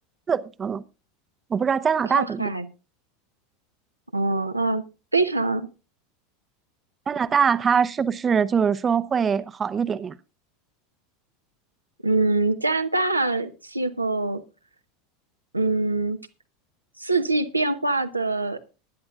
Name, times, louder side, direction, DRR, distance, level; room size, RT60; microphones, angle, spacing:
voice 1, 0.3-0.8 1.5-2.5 7.1-10.2, right 6 dB, 25° right, 0.7 m, -23 dB
voice 2, 2.1-2.7 4.1-4.8 5.1-5.7 12.0-14.4 15.5-16.2 17.0-18.6, right 2 dB, 90° right, 0.9 m, -24 dB
20.0 x 10.5 x 2.4 m
figure-of-eight pair, 80°, 0 cm